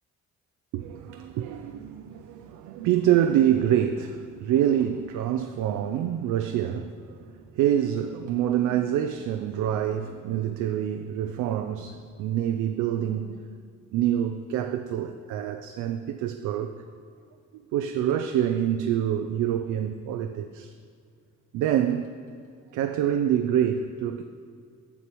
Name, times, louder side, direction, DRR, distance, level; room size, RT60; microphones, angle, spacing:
voice 1, 0.7-13.4 13.9-16.7 17.5-20.7 21.5-22.1 22.7-24.2, right 10 dB, 85° right, 0.4 m, -26 dB
6.9 x 6.7 x 4.6 m
cardioid pair, 90°, 30 cm